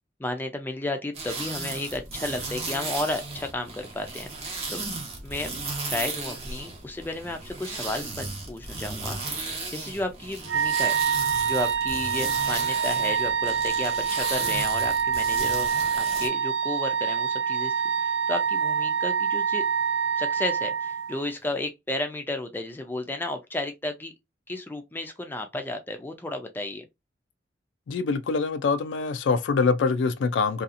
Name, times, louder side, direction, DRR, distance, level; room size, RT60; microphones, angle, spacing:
voice 1, 0.2-4.9 5.2-5.5 5.9-11.0 11.4-15.7 16.0-19.6 20.2-24.1 24.5-26.8, left 2 dB, 10° left, 0.4 m, -33 dB
sound 1, 1.1-16.3, right 3 dB, 35° right, 0.8 m, -35 dB
Wind instrument woodwind instrument, 10.5-21.2, right 6 dB, 70° right, 0.4 m, -26 dB
voice 2, 27.9-30.6, left 4 dB, 85° left, 0.3 m, -24 dB
2.7 x 2.4 x 2.4 m
head